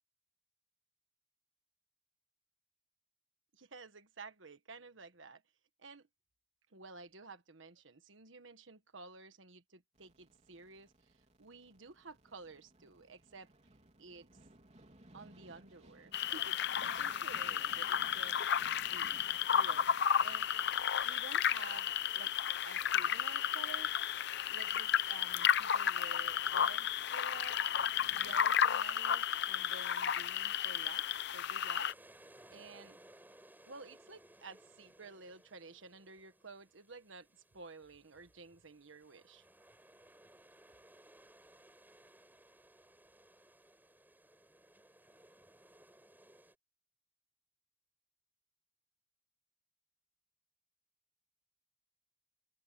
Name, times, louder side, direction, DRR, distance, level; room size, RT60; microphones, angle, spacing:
voice 1, 3.5-5.4 5.8-6.1 6.7-11.1 11.4-13.5 14.0-14.3 15.1-18.4 18.8-19.8 20.2-20.5 21.0-22.3 22.6-23.9 24.5-27.6 28.2-31.0 31.3-31.9 32.5-33.0 33.7-37.3 37.5-39.4, right 4 dB, 75° right, 1.4 m, -52 dB
sound 1, 9.9-28.4, right 1 dB, 35° right, 3.6 m, -63 dB
sound 2, 16.1-31.9, left 8 dB, 60° left, 0.7 m, -33 dB
sound 3, 31.9-46.5, right 1 dB, 10° right, 6.4 m, -62 dB
head